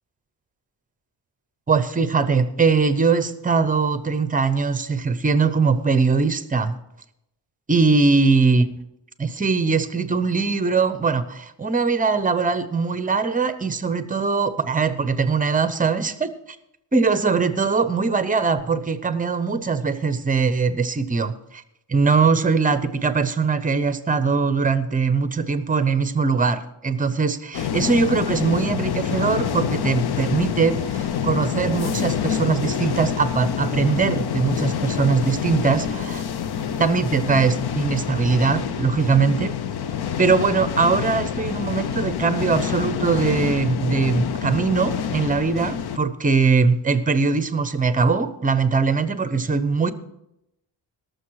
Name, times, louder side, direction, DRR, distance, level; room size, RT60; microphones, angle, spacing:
voice 1, 1.7-6.7 7.7-8.7 9.2-16.3 16.9-21.6 21.9-36.2 36.8-39.5 40.2-49.9, right 4 dB, 20° right, 12 dB, 0.7 m, -21 dB
sound 1, 27.5-46.0, left 8 dB, 60° left, 0.7 m, -27 dB
19.0 x 6.8 x 4.7 m, 0.84 s
wide cardioid pair, 155°, 44 cm